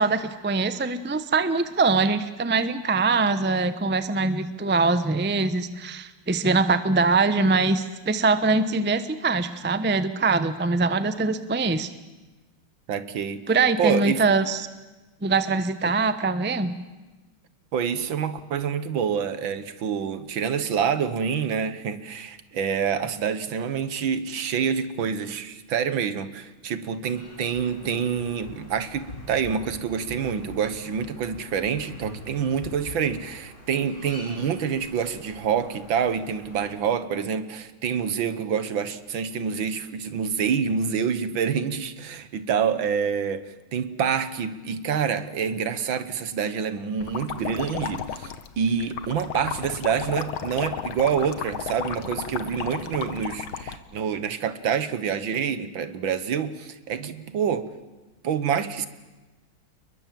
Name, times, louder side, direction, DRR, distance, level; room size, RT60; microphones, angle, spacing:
voice 1, 0.0-11.9 13.5-14.7 15.2-16.7, right 3 dB, 10° right, 12 dB, 0.5 m, -23 dB
voice 2, 12.9-13.4 13.8-14.2 15.8-15.9 17.7-57.7 58.2-58.9, right 7 dB, 70° right, 12 dB, 2.0 m, -27 dB
sound 1, 27.1-36.7, left 1 dB, 35° left, 6.7 m, -45 dB
sound 2, 47.0-53.8, left 8 dB, 85° left, 2.1 m, -33 dB
29.5 x 21.5 x 7.7 m, 1.2 s
omnidirectional pair, 2.2 m